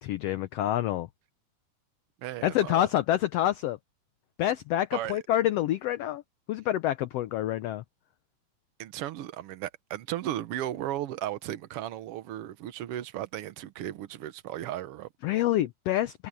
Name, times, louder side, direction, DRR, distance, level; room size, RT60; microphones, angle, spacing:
voice 1, 0.0-1.1 2.4-3.8 4.4-6.2 6.5-7.8 15.2-16.3, left 13 dB, 75° left, 1.4 m, -27 dB
voice 2, 2.2-2.9 4.9-5.2 8.8-15.1, right 13 dB, 65° right, 1.5 m, -35 dB
omnidirectional pair, 3.5 m